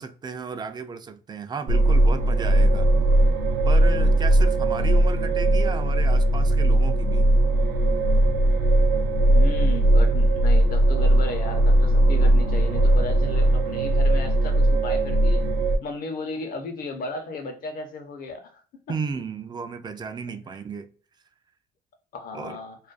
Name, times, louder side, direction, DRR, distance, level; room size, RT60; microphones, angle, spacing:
voice 1, 0.0-2.9 3.7-7.3 18.9-20.9 22.3-22.6, right 5 dB, 25° right, 0.3 m, -34 dB
sound 1, 1.7-15.8, right 1 dB, 75° right, 0.6 m, -19 dB
voice 2, 9.2-15.4 15.8-18.6 20.5-20.6 22.1-22.8, left 3 dB, 60° left, 0.7 m, -35 dB
2.4 x 2.2 x 2.4 m
cardioid pair, 110°, 17 cm